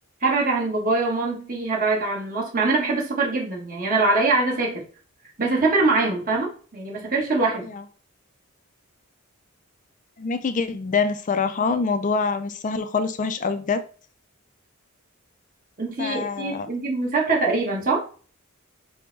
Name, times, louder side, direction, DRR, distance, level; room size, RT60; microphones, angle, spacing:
voice 1, 0.2-4.8 5.4-7.7 15.8-18.1, right 3 dB, 40° right, -2 dB, 1.3 m, -23 dB
voice 2, 10.2-13.8 16.0-16.7, left 4 dB, 35° left, 11 dB, 0.4 m, -25 dB
5.1 x 2.1 x 4.4 m, 0.40 s
head